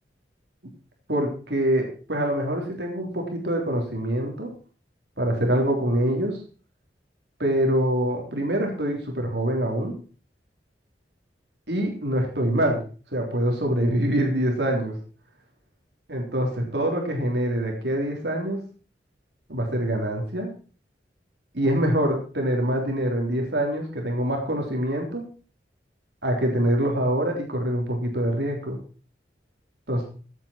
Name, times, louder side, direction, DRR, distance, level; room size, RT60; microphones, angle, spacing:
voice 1, 1.1-4.5 5.2-6.4 7.4-9.9 11.7-12.8 13.1-15.0 16.1-18.7 19.5-20.5 21.5-25.3 26.2-28.8 29.9-30.0, right 1 dB, 70° right, 1 dB, 3.6 m, -25 dB
15.5 x 8.9 x 4.5 m, 0.38 s
head